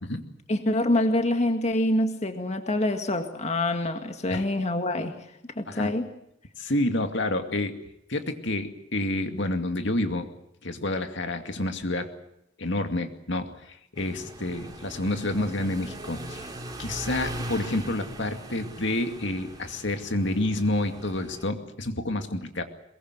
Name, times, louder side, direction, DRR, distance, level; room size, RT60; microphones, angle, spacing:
voice 1, 0.5-5.2 5.6-6.1, left 1 dB, 35° left, 6 dB, 2.0 m, -26 dB
voice 2, 6.6-7.7 8.1-10.3 10.6-12.1 12.6-16.5 16.8-22.6, left 1 dB, 65° left, 6 dB, 2.3 m, -29 dB
sound 1, 14.0-21.5, right 1 dB, 20° right, 3.3 m, -40 dB
22.5 x 22.0 x 8.1 m, 0.79 s
head